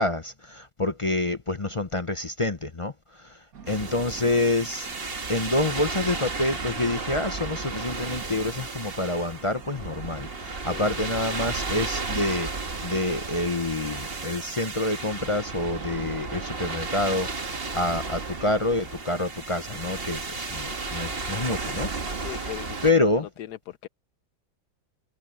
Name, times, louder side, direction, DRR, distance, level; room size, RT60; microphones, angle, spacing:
voice 1, 0.0-3.4 3.7-22.3 22.8-23.3, left 2 dB, 30° left, 0.6 m, -27 dB
sound 1, 3.5-23.2, right 6 dB, 60° right, 2.0 m, -49 dB
sound 2, 3.6-21.8, equal, 5° right, 7.3 m, -62 dB
sound 3, 3.7-22.9, right 3 dB, 35° right, 1.9 m, -34 dB
voice 2, 22.2-23.9, left 13 dB, 75° left, 1.3 m, -39 dB
omnidirectional pair, 1.8 m